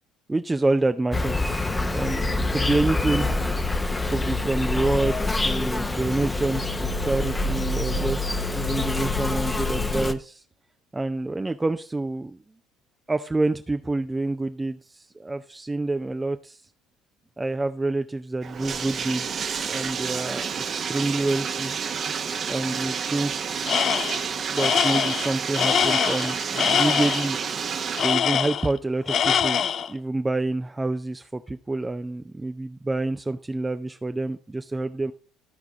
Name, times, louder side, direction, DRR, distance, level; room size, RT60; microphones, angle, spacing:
voice 1, 0.3-3.3 4.1-8.3 8.5-10.4 10.9-12.4 13.1-16.6 17.4-21.7 22.5-23.5 24.5-27.4 28.0-29.6 29.9-35.1, right 2 dB, 15° right, 8 dB, 0.5 m, -27 dB
Insect, 1.1-10.1, left 2 dB, 15° left, 0.8 m, -26 dB
Bathtub (filling or washing), 18.4-28.2, right 6 dB, 40° right, 0.9 m, -29 dB
Tools, 23.7-24.2 24.6-27.3 28.0-28.8 29.1-29.9, left 8 dB, 45° left, 0.4 m, -23 dB
14.0 x 4.7 x 3.8 m, 0.39 s
hypercardioid pair, 60°, 0 cm